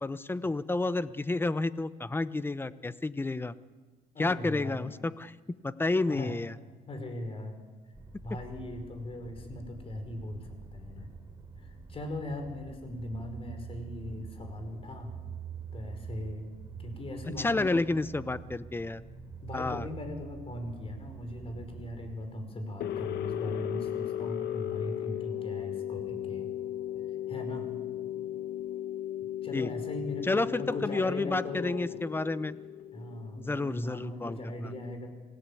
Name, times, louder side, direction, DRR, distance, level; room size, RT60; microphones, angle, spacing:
voice 1, 0.0-3.5 4.2-5.3 5.6-6.5 17.4-19.0 19.5-19.9 29.5-29.7 30.2-32.6 33.4-34.7, left 2 dB, 15° left, 15 dB, 0.8 m, -30 dB
voice 2, 4.1-4.9 6.0-6.4 6.9-7.6 8.2-11.1 11.6-15.1 15.7-17.8 19.4-26.5 27.3-27.7 29.4-31.9 32.9-35.1, left 1 dB, 35° left, 6 dB, 5.1 m, -39 dB
sound 1, 7.9-22.2, right 6 dB, 20° right, 3.7 m, -46 dB
sound 2, 22.8-33.7, left 11 dB, 85° left, 1.2 m, -36 dB
27.0 x 17.5 x 8.5 m, 1.3 s
cardioid pair, 120°, 17 cm